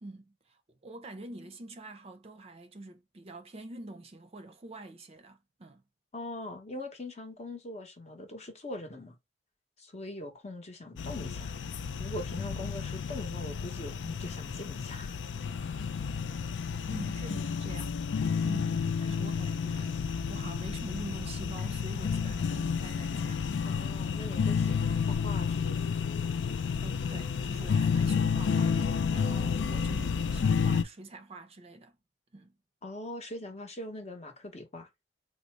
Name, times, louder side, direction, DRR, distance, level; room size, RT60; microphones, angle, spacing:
voice 1, 0.0-5.8 16.9-20.0 20.3-23.5 26.8-32.0 32.3-32.5, right 2 dB, 35° right, 0.5 m, -45 dB
voice 2, 6.1-9.2 9.8-11.5 12.0-15.2 16.8-16.9 23.6-26.0 32.8-34.9, left 1 dB, 40° left, 0.8 m, -42 dB
sound 1, 11.0-30.8, left 6 dB, 75° left, 0.4 m, -31 dB
3.9 x 2.0 x 3.2 m
head